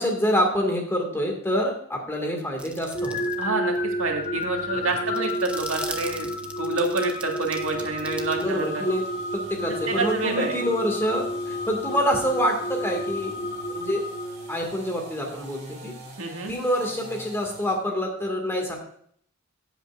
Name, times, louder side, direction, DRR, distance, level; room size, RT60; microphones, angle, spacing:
voice 1, 0.0-3.2 4.7-4.9 8.4-9.0 9.3-13.4 13.7-14.0 14.5-15.9 16.5-18.7, equal, 10° left, 1 dB, 2.1 m, -26 dB
sound 1, 2.6-3.4 3.8-3.9 4.2-9.1, right 2 dB, 5° right, 0.7 m, -39 dB
sound 2, 2.9-14.9, equal, 45° left, 1.3 m, -31 dB
voice 2, 3.4-6.3 6.6-8.8 9.9-10.6 16.2-16.5, right 3 dB, 80° right, 1 dB, 1.9 m, -28 dB
sound 3, 7.6-17.8, right 2 dB, 35° right, 2.9 m, -46 dB
16.0 x 8.1 x 2.6 m, 0.62 s
head